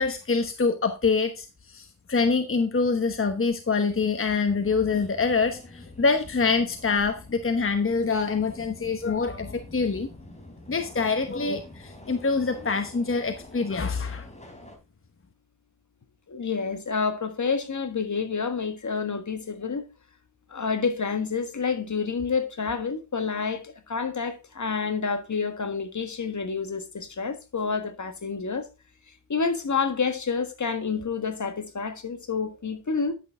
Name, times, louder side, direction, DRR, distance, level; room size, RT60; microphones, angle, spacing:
voice 1, 0.0-10.1 10.7-14.2, left 4 dB, 35° left, 1.2 m, -25 dB
Subway metro underground, 4.5-14.8, left 1 dB, 20° left, 3.7 m, -47 dB
voice 2, 16.3-19.9 20.5-28.7 29.3-33.1, left 5 dB, 50° left, 1.6 m, -28 dB
11.0 x 6.4 x 3.6 m
cardioid pair, 50°, 37 cm